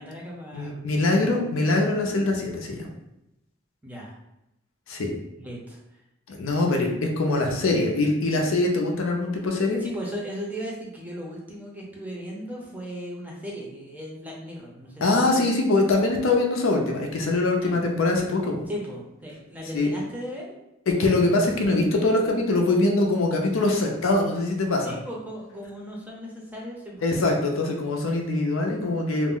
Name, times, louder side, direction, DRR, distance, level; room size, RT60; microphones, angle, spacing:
voice 1, 0.0-1.3 3.8-4.2 5.4-5.8 6.7-6.9 9.8-15.5 17.5-17.8 18.7-20.5 24.8-27.1, equal, 10° right, -3 dB, 0.5 m, -37 dB
voice 2, 0.5-2.8 4.9-5.1 6.3-9.8 15.0-18.6 19.7-19.9 20.9-24.9 27.0-29.4, left 2 dB, 75° left, 2 dB, 0.5 m, -23 dB
2.4 x 2.0 x 3.6 m, 0.87 s
head